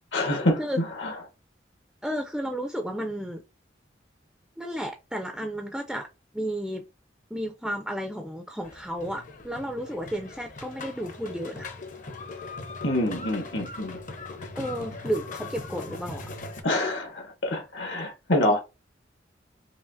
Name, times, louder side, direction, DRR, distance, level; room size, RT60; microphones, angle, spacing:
voice 1, 0.1-1.1 12.8-14.0 16.6-18.6, left 1 dB, 80° left, 1.1 m, -26 dB
voice 2, 2.0-3.4 4.6-6.1 6.3-6.9 7.3-11.7 14.6-16.3, equal, ahead, 0.3 m, -32 dB
sound 1, 8.6-16.6, left 3 dB, 45° left, 0.6 m, -40 dB
4.9 x 2.7 x 2.5 m
head